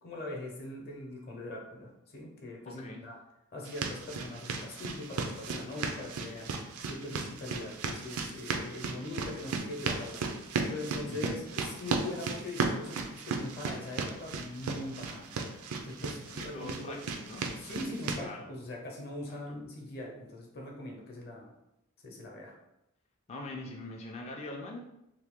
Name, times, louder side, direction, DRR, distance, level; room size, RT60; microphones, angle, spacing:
voice 1, 0.0-3.2 3.5-10.2 10.7-17.0 17.6-21.5 22.0-22.5, left 2 dB, 45° left, 0 dB, 0.8 m, -42 dB
voice 2, 2.6-3.0 11.1-11.4 16.3-17.5 18.2-18.5 19.3-19.4 23.3-24.8, left 2 dB, 30° left, 0 dB, 0.4 m, -43 dB
sound 1, 3.7-18.2, right 4 dB, 75° right, 0.4 m, -36 dB
2.8 x 2.8 x 3.6 m, 0.85 s
head